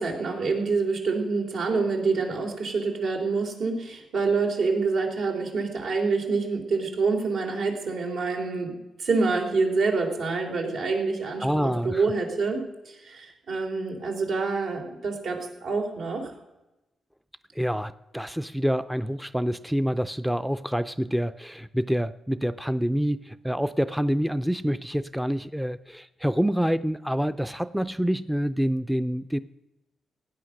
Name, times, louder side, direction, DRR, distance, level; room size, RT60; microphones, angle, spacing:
voice 1, 0.0-16.3, right 4 dB, 80° right, 2 dB, 3.5 m, -27 dB
voice 2, 11.4-12.0 17.6-29.4, equal, ahead, 13 dB, 0.4 m, -27 dB
17.0 x 9.6 x 6.4 m, 0.98 s
cardioid pair, 120°, 0 cm